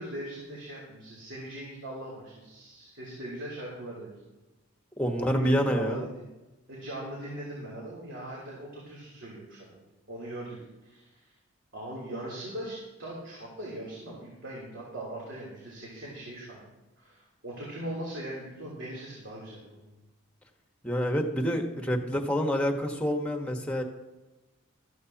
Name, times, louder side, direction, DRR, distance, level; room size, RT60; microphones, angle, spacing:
voice 1, 0.0-4.2 5.1-6.2 6.7-10.6 10.8-11.3 11.7-16.6 17.0-19.9, right 1 dB, 65° right, -5 dB, 3.3 m, -40 dB
voice 2, 5.0-6.0 20.8-23.8, equal, 5° left, 3 dB, 1.3 m, -27 dB
14.5 x 13.0 x 2.9 m, 1.1 s
head